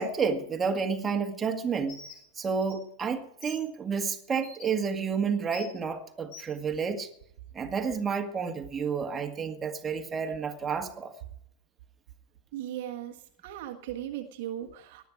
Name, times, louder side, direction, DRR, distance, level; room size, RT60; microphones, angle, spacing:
voice 1, 0.0-2.0 2.4-7.1 7.5-11.1, right 5 dB, 20° right, 1.9 m, -30 dB
Bird, 1.9-2.2 2.6-2.7 3.4-3.6 4.4-4.6 5.5-5.7 6.3-6.5, left 5 dB, 40° left, 5.5 m, -46 dB
voice 2, 12.5-13.1 13.4-15.1, right 11 dB, 50° right, 1.5 m, -37 dB
19.5 x 12.0 x 4.9 m
figure-of-eight pair, 90°, 0 cm